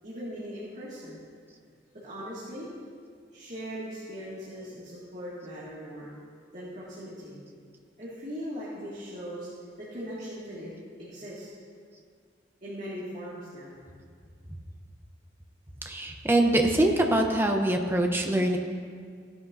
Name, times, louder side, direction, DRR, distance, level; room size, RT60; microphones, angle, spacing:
voice 1, 0.0-1.2 1.9-2.7 3.3-6.1 6.5-7.4 8.0-9.5 9.8-10.7 11.0-11.5 12.6-13.9, equal, 40° right, -9 dB, 2.0 m, -39 dB
voice 2, 15.8-18.6, right 1 dB, 10° right, 3 dB, 0.8 m, -24 dB
16.0 x 9.7 x 2.7 m, 2.1 s
head